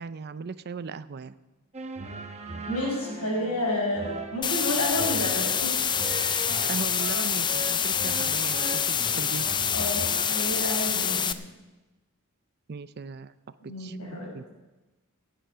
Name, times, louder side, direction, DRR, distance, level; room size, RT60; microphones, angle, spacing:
voice 1, 0.0-1.3 6.7-9.5 12.7-13.3 13.8-13.9 14.3-14.4, right 4 dB, 45° right, 15 dB, 0.5 m, -37 dB
sound 1, 1.7-10.3, right 2 dB, 30° right, 1.1 m, -39 dB
voice 2, 2.7-5.7 9.7-11.4 13.7-14.3, left 1 dB, 80° left, -3 dB, 5.8 m, -30 dB
sound 2, 4.4-11.3, left 7 dB, 20° left, 0.4 m, -26 dB
17.0 x 9.0 x 5.7 m, 1.1 s
head